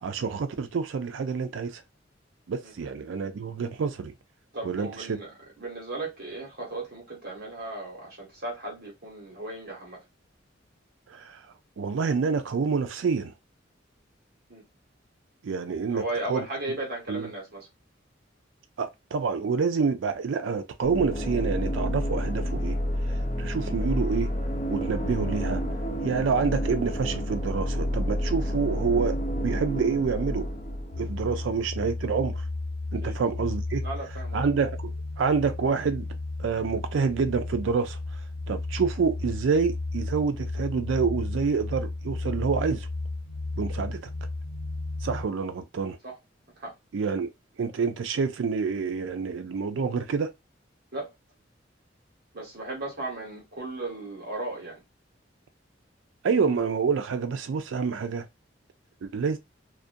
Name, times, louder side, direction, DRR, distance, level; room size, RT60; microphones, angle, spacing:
voice 1, 0.0-1.8 2.5-4.1 4.6-5.2 11.1-11.4 11.8-13.3 15.4-16.0 16.3-16.5 17.1-17.3 18.8-22.8 23.4-24.3 24.7-25.6 26.0-30.5 31.0-32.4 32.9-33.8 34.3-34.9 35.2-36.1 36.4-38.0 38.5-42.9 43.6-44.0 45.0-46.0 46.9-47.3 47.6-50.3 56.2-58.3 59.0-59.4, right 5 dB, 80° right, 0.4 m, -27 dB
voice 2, 4.5-10.0 14.5-14.6 15.9-17.7 33.0-33.2 33.8-34.4 46.0-46.2 46.6-46.7 50.9-51.1 52.3-54.8, right 2 dB, 55° right, 1.1 m, -36 dB
sound 1, 20.8-31.6, equal, 40° left, 0.6 m, -29 dB
sound 2, 30.9-45.2, left 2 dB, 80° left, 1.1 m, -34 dB
2.4 x 2.2 x 2.5 m
head